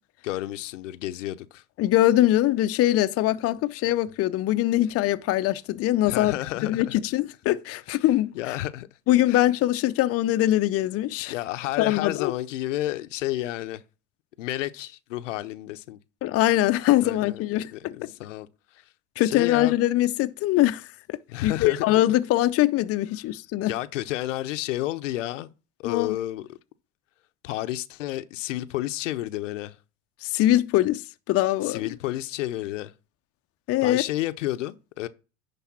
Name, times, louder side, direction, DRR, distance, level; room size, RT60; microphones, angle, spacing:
voice 1, 0.2-1.6 6.1-7.0 8.3-8.9 9.3-9.4 11.3-13.8 14.4-16.0 17.0-18.5 19.2-19.7 21.3-21.9 23.7-25.5 25.8-26.6 27.4-29.8 31.6-32.9 33.8-35.1, left 15 dB, 80° left, 0.7 m, -31 dB
voice 2, 1.8-6.3 6.6-8.6 9.1-11.3 11.8-12.3 16.2-18.0 19.2-23.7 25.8-26.2 30.2-31.0 31.3-31.8 33.7-34.0, left 14 dB, 40° left, 0.6 m, -22 dB
10.0 x 3.4 x 5.8 m
hypercardioid pair, 85°, 37 cm